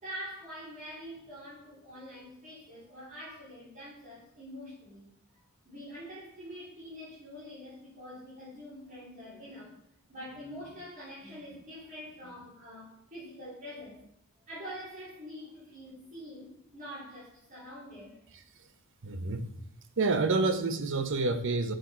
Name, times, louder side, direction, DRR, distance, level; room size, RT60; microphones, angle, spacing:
voice 1, 0.0-5.1 5.6-9.8 10.1-14.0 14.4-18.2, equal, 40° right, -10 dB, 3.5 m, -45 dB
voice 2, 19.0-19.4 20.0-21.7, right 3 dB, 60° right, 8 dB, 0.8 m, -28 dB
7.7 x 6.2 x 4.4 m, 0.69 s
head